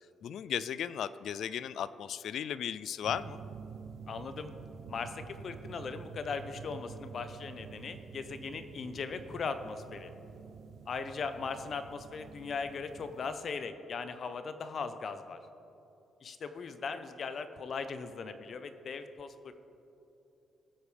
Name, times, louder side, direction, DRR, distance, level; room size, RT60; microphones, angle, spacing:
voice 1, 0.2-3.4, left 9 dB, 70° left, 16 dB, 0.3 m, -36 dB
sound 1, 3.0-13.3, right 6 dB, 70° right, 0.6 m, -48 dB
voice 2, 4.1-4.5 4.9-10.1 10.9-15.4 16.2-19.5, left 5 dB, 50° left, 10 dB, 0.8 m, -39 dB
19.5 x 8.2 x 3.4 m, 2.9 s
cardioid pair, 90°, 0 cm